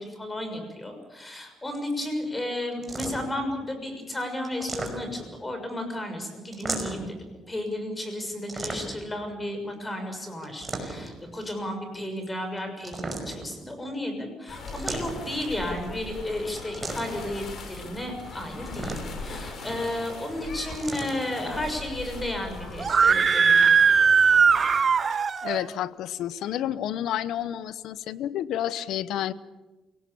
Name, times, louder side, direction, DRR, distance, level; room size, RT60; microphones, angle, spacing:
voice 1, 0.0-23.7, left 1 dB, 15° left, 5 dB, 6.5 m, -33 dB
sound 1, 2.8-3.4 4.4-5.3 6.5-7.1 8.5-9.1 10.4-11.2 12.8-13.6 14.7-15.4 16.7-17.3 18.6-19.3 20.7-21.2, right 3 dB, 25° right, 5.5 m, -35 dB
sound 2, 14.5-24.8, left 3 dB, 55° left, 5.8 m, -40 dB
Screaming, 22.8-25.6, right 6 dB, 45° right, 1.0 m, -19 dB
voice 2, 25.1-29.3, left 11 dB, 80° left, 16 dB, 0.9 m, -30 dB
28.0 x 18.5 x 7.2 m, 1.2 s
cardioid pair, 90°, 0 cm